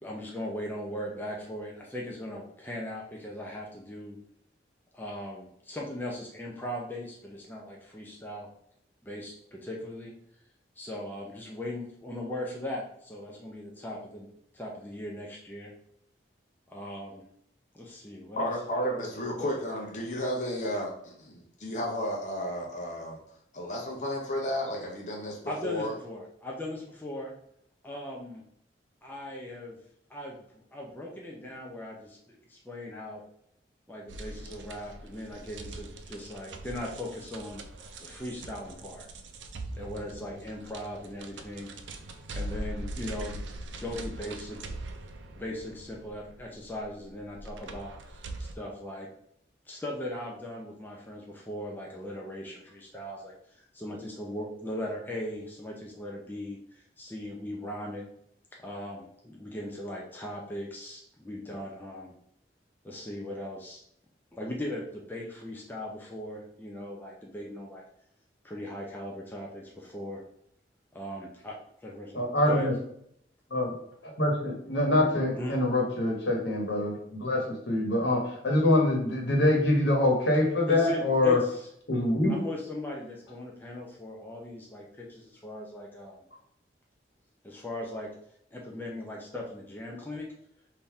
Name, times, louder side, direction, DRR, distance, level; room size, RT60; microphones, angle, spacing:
voice 1, 0.0-4.2 4.9-8.5 9.0-10.1 10.8-14.3 14.5-15.7 16.7-17.2 17.7-18.6 19.4-19.5 25.5-27.3 27.8-28.4 29.0-29.8 30.1-33.2 33.9-37.7 38.0-39.1 39.7-41.7 42.3-43.4 43.8-44.6 45.3-49.1 49.7-58.0 58.6-62.1 62.8-63.8 64.3-67.8 68.4-70.2 70.9-72.2 72.5-72.7 75.4-75.5 80.7-81.5 82.3-86.2 87.4-88.1 88.5-90.3, left 1 dB, 10° left, -2 dB, 0.6 m, -39 dB
voice 2, 18.4-23.2 23.5-25.9, equal, 40° left, -1 dB, 0.8 m, -32 dB
sound 1, 34.1-48.5, right 1 dB, 85° right, 0.5 m, -42 dB
voice 3, 72.1-72.7 73.5-73.8 74.0-81.4 81.9-82.3, left 1 dB, 75° left, 0 dB, 1.2 m, -25 dB
3.7 x 2.8 x 4.6 m, 0.71 s
head